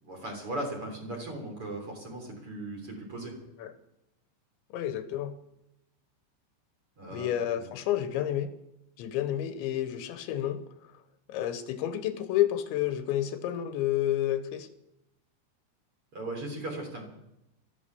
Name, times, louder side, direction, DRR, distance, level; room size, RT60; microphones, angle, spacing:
voice 1, 0.0-3.4 7.0-7.3 7.6-7.7 16.1-17.1, right 1 dB, 30° right, 1 dB, 4.0 m, -37 dB
voice 2, 4.7-5.3 7.1-8.5 9.0-10.6 11.3-14.7, left 12 dB, 85° left, 10 dB, 3.3 m, -30 dB
15.0 x 13.5 x 7.0 m, 0.84 s
omnidirectional pair, 5.3 m